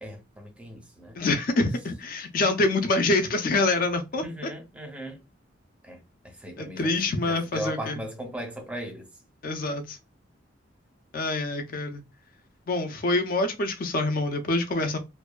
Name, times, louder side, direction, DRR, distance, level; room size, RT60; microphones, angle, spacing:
voice 1, 0.0-1.2 4.2-5.2 5.8-9.1, equal, 5° right, 0.5 m, -38 dB
voice 2, 1.2-4.2 6.6-8.0 9.4-10.0 11.1-12.0 12.7-15.0, left 2 dB, 45° left, 0.4 m, -26 dB
2.6 x 2.2 x 2.2 m
head